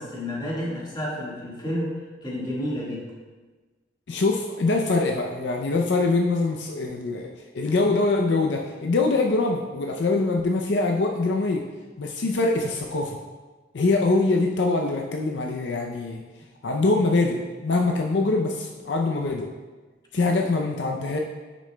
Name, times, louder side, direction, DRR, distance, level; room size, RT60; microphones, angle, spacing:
voice 1, 0.0-3.0, left 1 dB, 25° left, -5 dB, 1.6 m, -30 dB
voice 2, 4.1-11.6 12.0-13.2 13.7-16.2 16.6-19.5 20.1-21.2, left 3 dB, 65° left, 1 dB, 0.5 m, -23 dB
10.0 x 6.1 x 2.2 m, 1.3 s
head